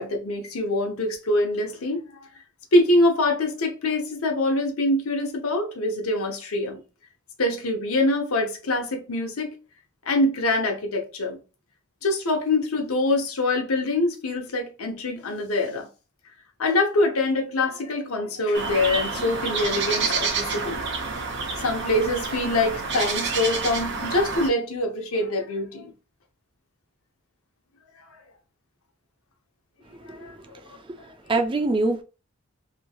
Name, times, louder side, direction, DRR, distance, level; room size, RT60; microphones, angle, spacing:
voice 1, 0.0-2.2 2.7-6.8 7.4-9.5 10.1-11.4 12.0-15.9 16.6-20.8 21.6-25.9 30.1-30.3, left 2 dB, 85° left, 0.8 m, -24 dB
sound 1, 18.5-24.5, right 4 dB, 55° right, 0.7 m, -28 dB
voice 2, 29.9-30.4 30.7-32.0, right 2 dB, 25° right, 0.4 m, -26 dB
3.0 x 2.8 x 2.3 m
head